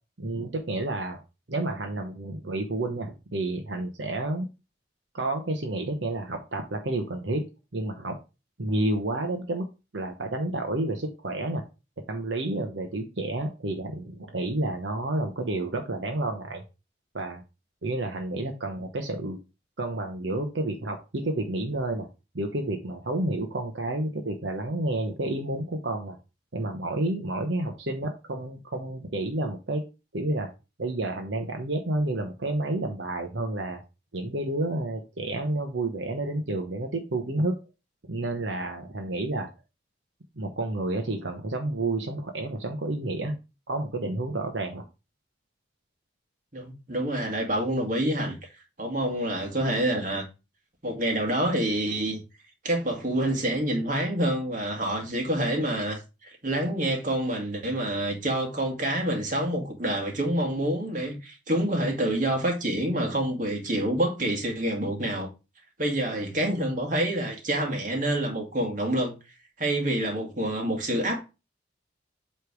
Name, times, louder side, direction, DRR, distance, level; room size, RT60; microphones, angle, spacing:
voice 1, 0.2-1.2 1.5-4.5 5.1-7.4 7.7-8.1 8.6-9.7 9.9-11.6 12.1-16.6 17.1-17.4 17.8-19.4 19.8-22.1 22.3-26.2 26.5-29.8 30.1-30.5 30.8-33.8 34.1-37.5 38.1-39.5 40.4-43.4 43.7-44.8, right 2 dB, 75° right, 1.0 m, -30 dB
voice 2, 46.5-48.4 48.8-50.2 50.8-52.2 52.6-65.3 65.8-69.2 69.6-71.2, right 1 dB, 45° right, 1.9 m, -27 dB
8.1 x 3.4 x 4.6 m
head